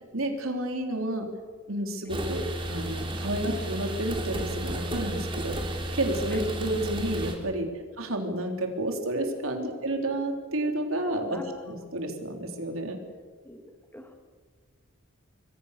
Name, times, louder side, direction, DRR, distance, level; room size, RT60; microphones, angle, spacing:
voice 1, 0.1-1.3 1.7-7.7 8.0-13.0, right 1 dB, 85° right, 4 dB, 3.9 m, -30 dB
sound 1, 2.1-7.4, right 1 dB, 25° right, 3.6 m, -33 dB
voice 2, 11.3-11.6 13.4-14.1, left 1 dB, 10° left, 5 dB, 2.2 m, -44 dB
26.5 x 23.0 x 6.8 m, 1.5 s
head